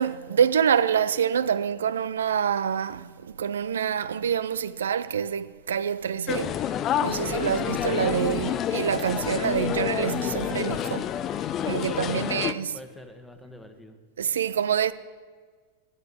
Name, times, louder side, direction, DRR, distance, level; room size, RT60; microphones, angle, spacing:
voice 1, 0.0-6.6 7.0-11.0 11.7-12.8 14.2-14.9, right 8 dB, 80° right, 0.4 m, -26 dB
sound 1, 6.3-12.5, left 10 dB, 35° left, 0.5 m, -28 dB
voice 2, 11.8-12.4 12.7-14.0, equal, 5° left, 1.2 m, -45 dB
10.5 x 6.8 x 7.5 m
hypercardioid pair, 100°, 0 cm